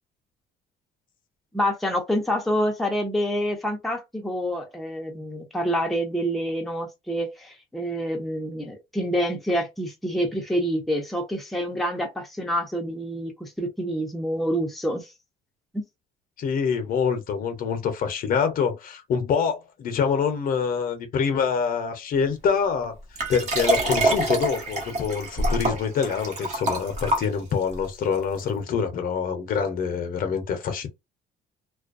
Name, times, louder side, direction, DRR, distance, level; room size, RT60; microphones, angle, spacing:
voice 1, 1.5-15.1 15.7-15.8, equal, ahead, 0.6 m, -27 dB
voice 2, 16.4-23.0 23.3-30.9, left 6 dB, 55° left, 0.7 m, -25 dB
Liquid, 23.2-27.7 28.4-28.5, right 1 dB, 45° right, 1.0 m, -25 dB
2.3 x 2.1 x 2.5 m
cardioid pair, 110°, 17 cm